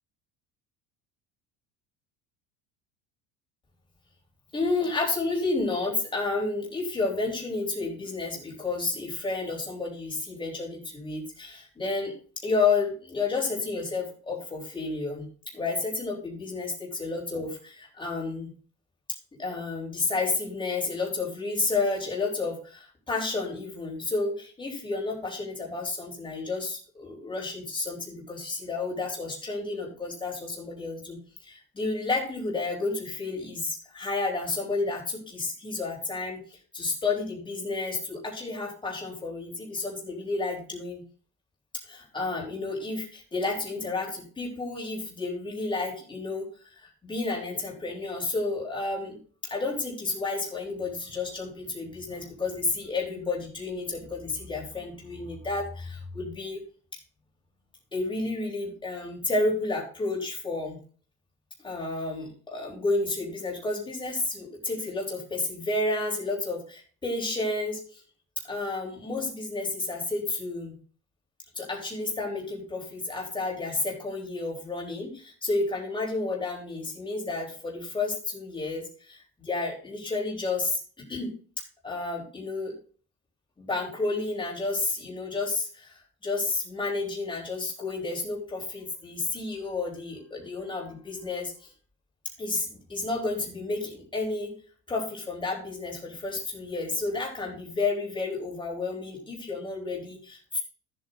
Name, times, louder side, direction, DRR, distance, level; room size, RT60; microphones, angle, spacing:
voice 1, 4.5-15.3 15.5-18.5 19.4-31.2 31.4-41.0 41.9-46.5 46.8-49.2 49.5-56.6 57.9-60.8 61.6-68.0 68.5-70.8 71.6-81.3 81.8-82.8 83.6-91.7 92.4-94.5 94.9-100.6, left 3 dB, 15° left, -1 dB, 3.4 m, -31 dB
14.5 x 7.8 x 2.6 m, 0.41 s
cardioid pair, 150°, 37 cm